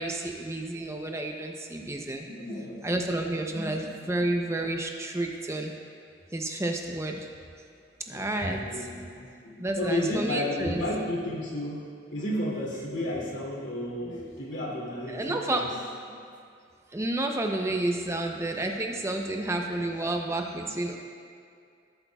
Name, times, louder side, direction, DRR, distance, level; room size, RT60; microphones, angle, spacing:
voice 1, 0.0-2.3 2.8-5.7 6.3-7.2 8.1-8.6 9.0-9.1 9.6-10.8 15.1-15.6 16.9-21.0, right 1 dB, 15° right, 2 dB, 0.6 m, -30 dB
voice 2, 2.3-3.0 3.5-4.1 8.1-11.8 12.1-15.8 16.1-16.2 17.3-17.4 17.8-18.0 18.5-18.9 19.3-19.9 20.2-21.0, left 1 dB, 80° left, -5 dB, 2.6 m, -34 dB
16.5 x 8.4 x 2.3 m, 2.3 s
head